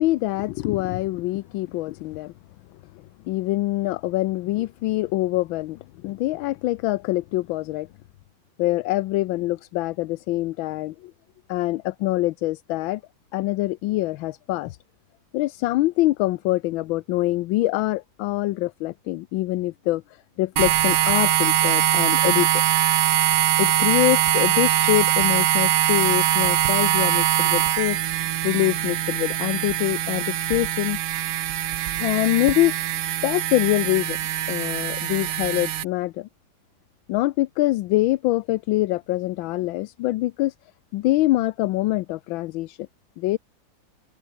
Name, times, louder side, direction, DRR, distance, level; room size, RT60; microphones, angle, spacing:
voice 1, 0.0-2.3 2.9-7.9 8.6-11.1 11.5-13.0 13.3-14.8 15.3-20.0 20.4-22.6 23.6-28.0 28.4-31.0 32.0-32.7 33.2-34.2 34.5-36.3 37.1-40.5 40.9-42.9 43.2-43.4, left 17 dB, 80° left, 1.4 m, -24 dB
sound 1, 20.6-35.8, right 12 dB, 65° right, 1.3 m, -22 dB
omnidirectional pair, 2.1 m